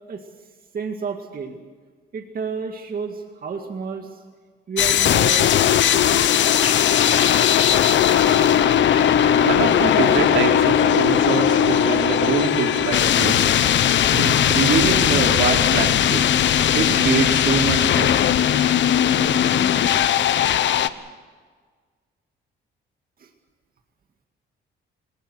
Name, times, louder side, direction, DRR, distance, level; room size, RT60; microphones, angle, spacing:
voice 1, 0.7-1.6 2.1-4.2 4.7-5.6 23.2-23.3, right 5 dB, 45° right, 4 dB, 2.2 m, -31 dB
sound 1, 4.8-20.9, left 10 dB, 65° left, 1.1 m, -18 dB
sound 2, 6.6-19.2, left 3 dB, 30° left, 6.4 m, -38 dB
voice 2, 9.4-13.5 14.1-16.2 16.7-18.1, right 6 dB, 75° right, 3 dB, 3.4 m, -24 dB
29.0 x 18.5 x 6.5 m, 1.5 s
cardioid pair, 90°, 20 cm